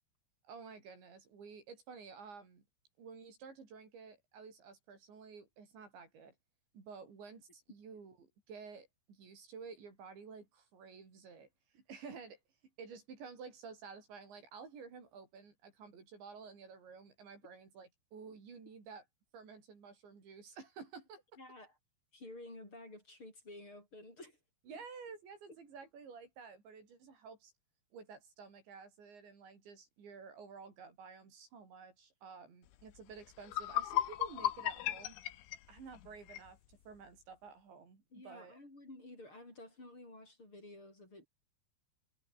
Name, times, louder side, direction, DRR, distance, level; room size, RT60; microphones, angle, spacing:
voice 1, 0.4-2.6 3.0-6.3 6.7-11.5 11.7-12.4 12.8-19.0 19.3-21.2 24.7-27.5 27.9-35.2 35.7-38.6, right 5 dB, 75° right, 8.3 m, -52 dB
voice 2, 21.4-21.7 22.1-24.4 38.1-41.3, left 2 dB, 25° left, 8.7 m, -52 dB
sound 1, 33.0-33.1 33.4-36.5, left 13 dB, 90° left, 4.1 m, -36 dB
omnidirectional pair, 5.2 m